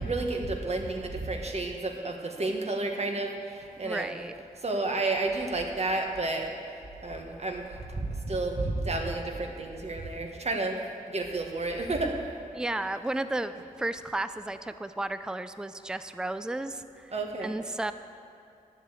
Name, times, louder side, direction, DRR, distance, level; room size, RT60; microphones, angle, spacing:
voice 1, 0.0-4.1 4.6-6.5 7.0-10.8 11.1-12.2 17.1-17.5, right 2 dB, 50° right, 2 dB, 1.5 m, -31 dB
voice 2, 3.8-4.3 12.5-17.1 17.4-17.9, right 2 dB, 5° right, 11 dB, 0.4 m, -33 dB
11.0 x 7.5 x 8.3 m, 2.5 s
wide cardioid pair, 75°, 14 cm